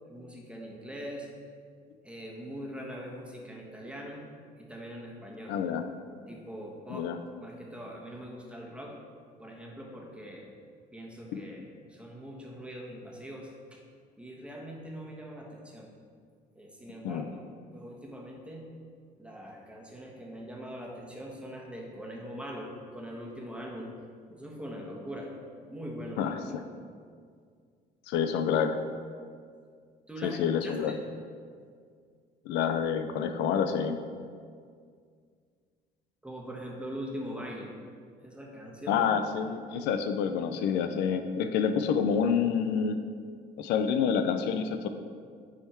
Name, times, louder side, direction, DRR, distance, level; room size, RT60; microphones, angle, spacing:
voice 1, 0.1-1.3 2.0-4.2 4.6-5.6 6.3-7.1 7.4-8.9 9.4-10.5 10.9-13.8 14.1-15.9 16.5-17.4 17.7-18.7 19.2-23.9 24.3-25.3 25.6-26.3 30.1-31.0 36.2-37.7 38.2-39.1, equal, 5° right, -1 dB, 1.3 m, -42 dB
voice 2, 5.5-5.9 6.9-7.2 11.3-11.4 17.0-17.2 26.2-26.6 28.1-28.8 30.2-31.0 32.5-34.0 38.9-43.0 43.6-44.9, left 7 dB, 90° left, 8 dB, 0.5 m, -28 dB
9.9 x 3.5 x 4.5 m, 2.1 s
cardioid pair, 110°, 17 cm